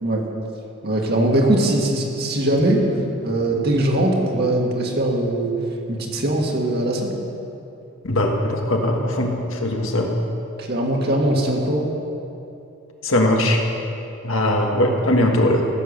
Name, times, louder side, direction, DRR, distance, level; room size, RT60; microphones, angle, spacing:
voice 1, 0.8-2.8 3.2-5.5 5.9-7.2 10.6-11.9, right 1 dB, 50° right, 0 dB, 1.9 m, -21 dB
voice 2, 8.0-10.1 13.0-13.6 14.2-15.6, left 1 dB, 70° left, 1 dB, 1.6 m, -20 dB
15.5 x 8.0 x 6.6 m, 2.7 s
head